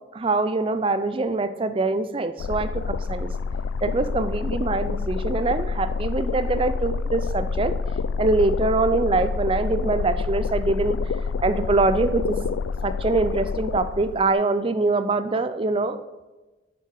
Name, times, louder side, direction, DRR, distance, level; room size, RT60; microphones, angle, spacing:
voice 1, 0.1-3.3 3.8-7.8 8.2-11.0 11.4-12.4 12.8-16.0, right 3 dB, 30° right, 11 dB, 0.4 m, -24 dB
sound 1, 2.4-14.3, left 5 dB, 85° left, 0.3 m, -27 dB
8.6 x 7.2 x 4.8 m, 1.1 s
head